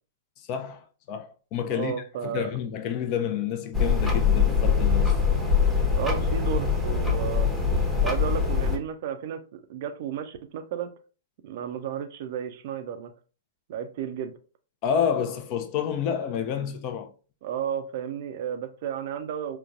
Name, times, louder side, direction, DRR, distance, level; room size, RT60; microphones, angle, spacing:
voice 1, 0.5-1.9 2.2-5.2 14.8-17.1, left 8 dB, 40° left, 0.5 m, -29 dB
voice 2, 1.7-2.5 5.9-7.5 8.0-10.9 11.4-13.1 13.7-14.3 17.4-19.6, right 9 dB, 50° right, 0.4 m, -33 dB
sound 1, 3.7-8.8, left 6 dB, 5° left, 0.8 m, -23 dB
3.9 x 2.2 x 2.4 m
figure-of-eight pair, 105°, 0 cm